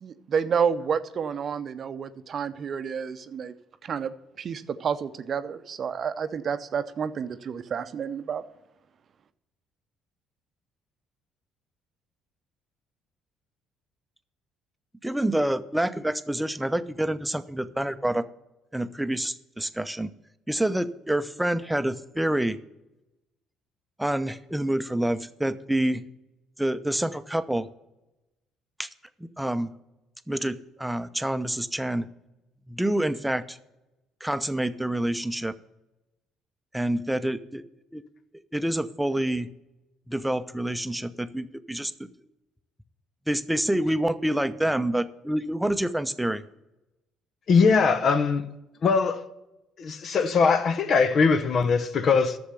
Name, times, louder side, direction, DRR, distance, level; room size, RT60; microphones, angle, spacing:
voice 1, 0.0-3.5 3.8-8.4, right 7 dB, 50° right, 0.7 m, -30 dB
voice 2, 15.0-18.3 18.7-20.1 20.5-22.6 24.0-26.0 26.6-27.7 28.8-28.9 29.4-29.7 30.3-32.1 32.7-33.6 34.2-35.5 36.7-37.6 37.9-38.0 38.5-39.5 40.1-41.9 43.3-46.4, right 1 dB, 5° right, 0.8 m, -27 dB
voice 3, 47.5-48.4 48.8-49.2 49.8-52.4, left 5 dB, 50° left, 0.9 m, -21 dB
11.5 x 7.1 x 6.9 m
hypercardioid pair, 50°, 0 cm